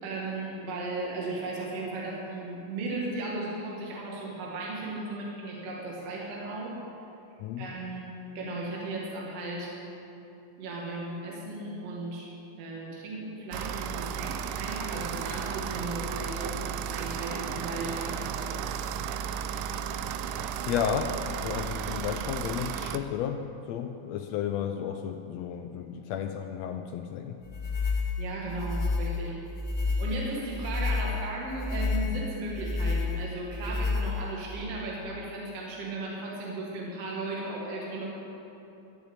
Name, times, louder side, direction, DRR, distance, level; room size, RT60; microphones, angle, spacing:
voice 1, 0.0-6.8 7.6-9.8 10.6-12.3 12.6-18.6 28.2-29.4 30.0-38.0, right 2 dB, 55° right, -3 dB, 2.7 m, -36 dB
sound 1, 13.5-23.0, right 8 dB, 85° right, 2.0 m, -34 dB
voice 2, 20.7-27.4, left 8 dB, 80° left, 6 dB, 1.5 m, -33 dB
sound 2, 27.5-34.6, left 3 dB, 50° left, 2.2 m, -30 dB
13.5 x 7.0 x 8.7 m, 2.9 s
omnidirectional pair, 3.6 m